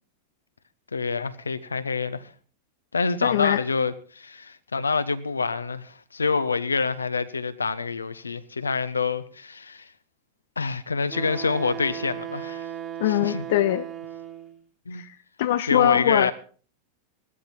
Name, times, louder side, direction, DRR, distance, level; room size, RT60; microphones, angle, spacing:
voice 1, 0.9-2.3 2.9-9.9 10.6-12.7 13.1-13.4 14.9-15.0 15.7-16.3, left 4 dB, 75° left, 1.0 m, -27 dB
voice 2, 3.2-3.6 13.0-13.8 15.0-16.3, left 13 dB, 55° left, 0.5 m, -22 dB
Wind instrument woodwind instrument, 11.1-14.6, right 10 dB, 25° right, 2.7 m, -36 dB
17.0 x 12.5 x 4.5 m
figure-of-eight pair, 90°, 0 cm